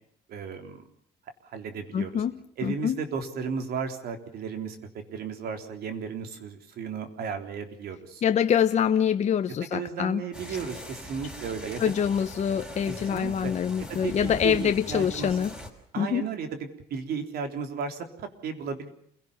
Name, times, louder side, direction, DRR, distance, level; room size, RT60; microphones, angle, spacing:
voice 1, 0.3-0.8 1.4-2.2 2.6-4.8 5.1-8.2 9.7-11.8 12.9-13.5 13.9-15.3 15.9-18.9, right 6 dB, 65° right, 6 dB, 3.9 m, -34 dB
voice 2, 1.9-2.4 2.6-3.0 8.2-10.2 11.8-15.6 16.0-16.3, left 8 dB, 40° left, 8 dB, 0.9 m, -25 dB
sound 1, 10.3-15.7, equal, 5° right, 5.4 m, -41 dB
28.0 x 17.5 x 7.2 m, 0.68 s
cardioid pair, 110°, 17 cm